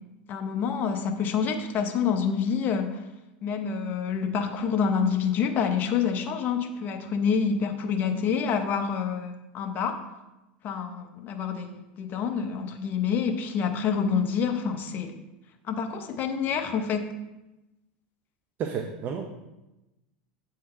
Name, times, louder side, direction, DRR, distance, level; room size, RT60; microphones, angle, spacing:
voice 1, 0.3-3.0 3.4-10.0 10.6-15.1 15.7-17.0, left 6 dB, 40° left, 6 dB, 0.7 m, -27 dB
voice 2, 18.6-19.3, right 7 dB, 40° right, 4 dB, 0.6 m, -31 dB
7.6 x 3.8 x 4.4 m, 0.99 s
hypercardioid pair, 100°, 5 cm